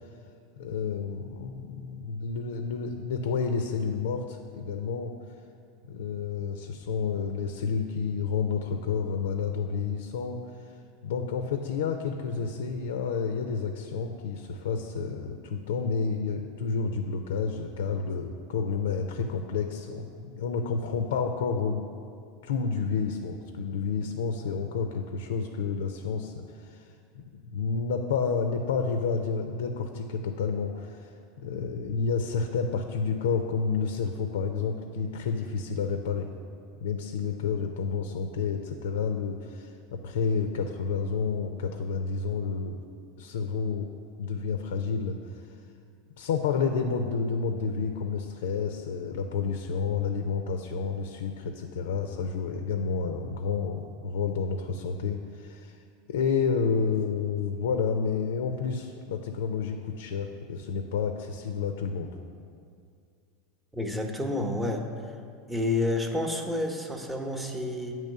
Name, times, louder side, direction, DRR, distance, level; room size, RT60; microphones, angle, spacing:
voice 1, 0.6-5.1 5.9-10.4 10.7-10.8 11.0-21.8 22.4-31.1 31.4-36.3 36.8-42.8 43.2-43.9 44.2-45.6 46.2-55.8 56.1-62.1, left 5 dB, 85° left, 6 dB, 0.4 m, -30 dB
voice 2, 63.7-64.8 65.5-67.9, left 2 dB, 10° right, 3 dB, 0.8 m, -29 dB
8.8 x 3.1 x 6.5 m, 2.4 s
hypercardioid pair, 105°, 0 cm